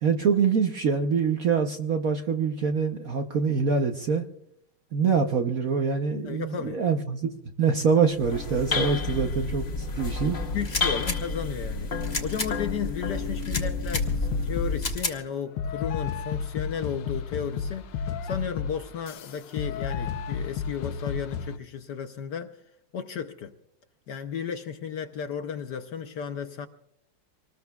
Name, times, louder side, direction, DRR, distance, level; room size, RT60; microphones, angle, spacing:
voice 1, 0.0-4.3 4.9-7.3 7.6-10.4, right 5 dB, 55° right, 1.0 m, -25 dB
voice 2, 6.2-6.8 8.7-8.9 10.5-22.5 22.9-23.5 24.1-26.7, left 7 dB, 65° left, 1.1 m, -34 dB
sound 1, 8.1-15.1, left 3 dB, 40° left, 1.8 m, -30 dB
sound 2, 10.6-11.2 12.0-12.5 13.4-14.0 14.8-15.2, left 3 dB, 20° left, 1.3 m, -31 dB
sound 3, 13.6-14.9 15.6-21.5, left 6 dB, 85° left, 1.7 m, -32 dB
25.5 x 19.5 x 2.3 m
omnidirectional pair, 2.4 m